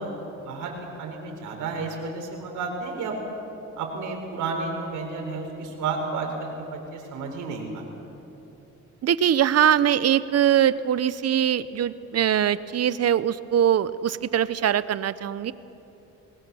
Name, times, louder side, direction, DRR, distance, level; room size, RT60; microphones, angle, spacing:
voice 1, 0.0-3.3 3.8-7.8, right 3 dB, 90° right, 2 dB, 4.5 m, -32 dB
voice 2, 9.0-15.5, right 10 dB, 55° right, 15 dB, 0.9 m, -22 dB
28.5 x 19.5 x 7.1 m, 3.0 s
cardioid pair, 90°, 30 cm